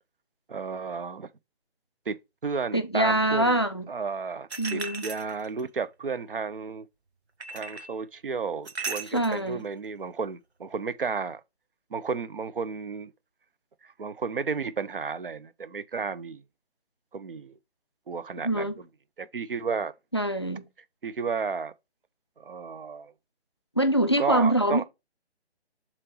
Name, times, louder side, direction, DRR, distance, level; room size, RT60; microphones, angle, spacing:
voice 1, 0.5-1.3 2.1-2.2 2.4-3.6 3.9-6.9 7.5-11.4 11.9-13.1 13.8-16.4 17.1-17.6 18.1-18.7 19.2-19.9 21.0-21.7 22.4-23.1 24.2-24.8, right 5 dB, 55° right, 0.6 m, -32 dB
voice 2, 2.7-3.9 4.6-5.0 9.1-9.6 18.4-18.7 20.1-20.6 23.8-24.8, right 1 dB, 25° left, 0.4 m, -24 dB
sound 1, 4.5-5.7 7.4-7.9 8.6-9.4, right 4 dB, 75° right, 1.0 m, -36 dB
7.3 x 3.0 x 4.7 m
figure-of-eight pair, 145°, 33 cm